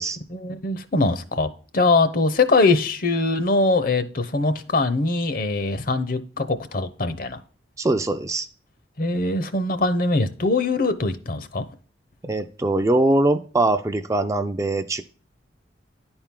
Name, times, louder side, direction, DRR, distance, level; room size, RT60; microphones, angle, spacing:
voice 1, 0.3-7.4 9.0-11.6, left 3 dB, 50° left, 0.7 m, -22 dB
voice 2, 7.8-8.5 12.2-15.0, right 2 dB, 15° right, 0.4 m, -22 dB
10.5 x 4.5 x 3.7 m
head